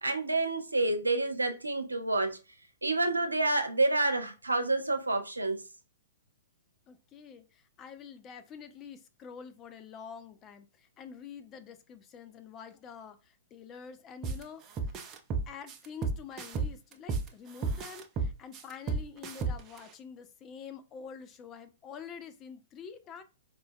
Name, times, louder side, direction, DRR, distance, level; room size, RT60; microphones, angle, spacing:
voice 1, 0.0-2.4 2.8-5.6, right 2 dB, 85° right, 0.5 m, -28 dB
voice 2, 6.9-14.6 15.5-23.2, left 6 dB, 25° left, 0.4 m, -47 dB
sound 1, 14.2-14.4 14.8-17.3 17.6-19.8, right 4 dB, 25° right, 0.5 m, -32 dB
4.3 x 2.2 x 2.6 m
figure-of-eight pair, 110°, 0 cm